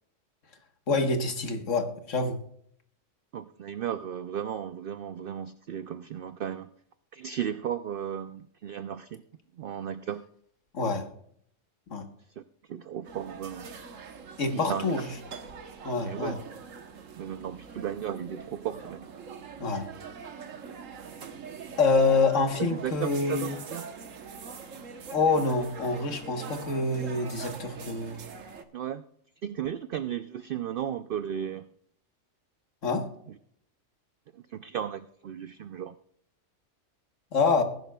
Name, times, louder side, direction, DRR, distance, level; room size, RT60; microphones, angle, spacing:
voice 1, 0.9-2.4 10.7-11.1 11.9-12.1 14.4-15.1 15.8-16.4 19.6-19.9 21.8-23.6 25.1-28.3 32.8-33.1 37.3-37.6, left 4 dB, 75° left, 5 dB, 1.7 m, -26 dB
voice 2, 3.3-6.7 7.1-9.2 9.6-10.3 12.6-13.7 14.5-14.9 16.0-16.4 17.2-19.1 22.7-23.8 28.7-29.0 29.4-31.7 34.3-36.0, right 9 dB, 60° right, 12 dB, 0.6 m, -35 dB
sound 1, 13.0-28.6, right 5 dB, 85° right, 1.5 m, -43 dB
20.5 x 11.0 x 2.3 m, 0.66 s
omnidirectional pair, 1.3 m